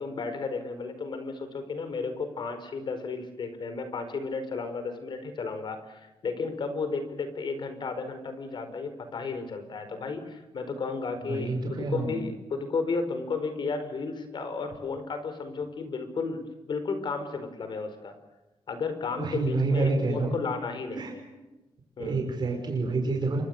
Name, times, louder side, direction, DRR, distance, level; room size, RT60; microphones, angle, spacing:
voice 1, 0.0-18.1 18.7-21.2 22.0-22.3, left 4 dB, 55° left, 9 dB, 4.7 m, -33 dB
voice 2, 11.3-12.2 19.2-20.3 21.0-21.1 22.0-23.4, right 3 dB, 50° right, 2 dB, 5.7 m, -28 dB
28.0 x 25.0 x 6.7 m, 1.0 s
wide cardioid pair, 145°, 9 cm